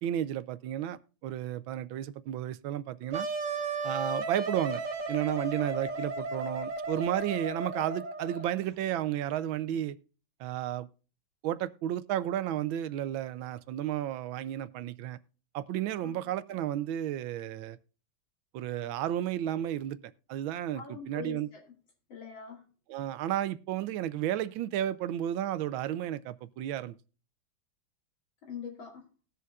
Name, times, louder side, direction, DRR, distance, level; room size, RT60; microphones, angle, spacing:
voice 1, 0.0-3.3 3.8-4.8 5.1-10.0 10.4-10.9 11.4-15.2 15.5-17.8 18.5-20.0 20.3-21.5 22.9-26.9, right 12 dB, 80° right, 1.4 m, -32 dB
Wind instrument woodwind instrument, 3.1-8.6, right 3 dB, 45° right, 1.4 m, -35 dB
voice 2, 20.7-21.6 22.1-22.6 28.5-29.0, left 5 dB, 70° left, 3.8 m, -43 dB
20.0 x 6.8 x 2.4 m
omnidirectional pair, 2.2 m